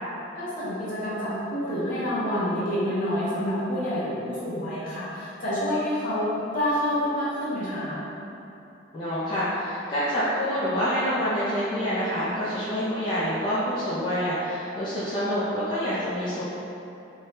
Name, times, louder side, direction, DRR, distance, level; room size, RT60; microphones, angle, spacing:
voice 1, 0.4-8.0, equal, 45° left, -9 dB, 0.8 m, -28 dB
voice 2, 8.9-16.4, equal, 25° left, -12 dB, 0.4 m, -27 dB
2.7 x 2.2 x 3.2 m, 2.8 s
head